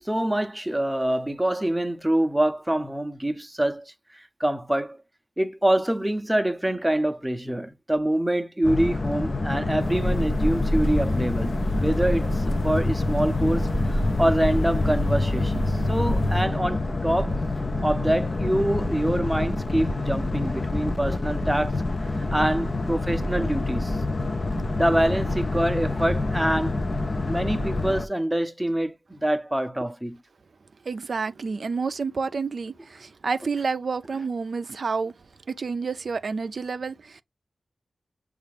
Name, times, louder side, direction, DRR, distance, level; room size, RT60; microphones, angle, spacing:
voice 1, 0.1-3.8 4.4-5.0 5.4-12.3 12.6-17.4 17.8-21.8 22.3-24.0 24.7-26.8 27.2-30.2, right 1 dB, 10° right, 0.6 m, -25 dB
Boat Water vehicle, 8.6-28.1, left 2 dB, 45° left, 0.4 m, -27 dB
sound 1, 9.8-16.4, left 1 dB, 70° left, 0.8 m, -26 dB
voice 2, 30.9-35.1 35.6-37.2, right 4 dB, 65° right, 0.3 m, -29 dB
6.6 x 2.4 x 3.3 m
wide cardioid pair, 70°, 0 cm